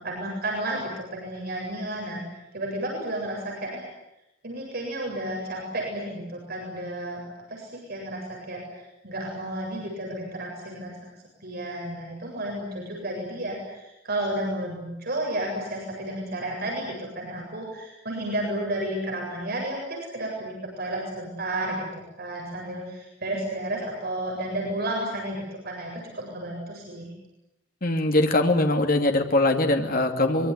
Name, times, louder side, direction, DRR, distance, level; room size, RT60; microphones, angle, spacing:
voice 1, 0.0-3.9 4.4-11.0 11.4-27.1, right 1 dB, 55° right, -1 dB, 7.9 m, -32 dB
voice 2, 27.8-30.5, left 2 dB, 50° left, 4 dB, 2.7 m, -22 dB
25.0 x 23.0 x 9.8 m, 0.88 s
head